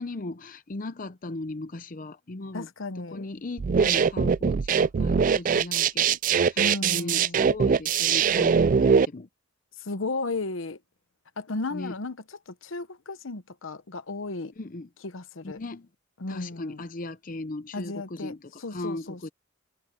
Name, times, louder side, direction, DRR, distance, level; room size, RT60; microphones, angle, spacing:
voice 1, 0.0-2.7 3.0-6.2 6.4-9.3 11.7-12.0 14.6-14.9 15.4-15.9 16.3-19.3, left 2 dB, 40° left, 0.6 m, -37 dB
voice 2, 2.5-3.3 6.6-7.5 9.8-10.8 11.4-12.2 12.6-14.5 15.0-15.6 16.2-16.8 17.7-19.3, left 3 dB, 75° left, 1.0 m, -34 dB
sound 1, 3.6-9.0, right 6 dB, 40° right, 0.3 m, -22 dB
head